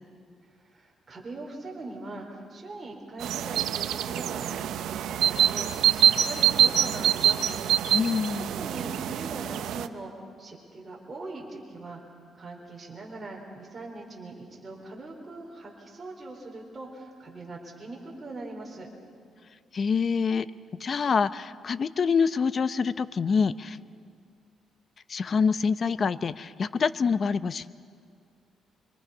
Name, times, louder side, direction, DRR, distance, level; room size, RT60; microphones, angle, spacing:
voice 1, 0.6-7.6 8.5-12.0 12.3-18.9, right 2 dB, 25° right, -1 dB, 4.1 m, -41 dB
sound 1, 3.2-9.9, right 10 dB, 80° right, 0.7 m, -25 dB
voice 2, 7.9-8.5 19.7-20.5 20.8-23.8 25.1-27.6, left 5 dB, 45° left, 14 dB, 0.7 m, -26 dB
26.0 x 24.5 x 5.6 m, 2.2 s
cardioid pair, 90°, 0 cm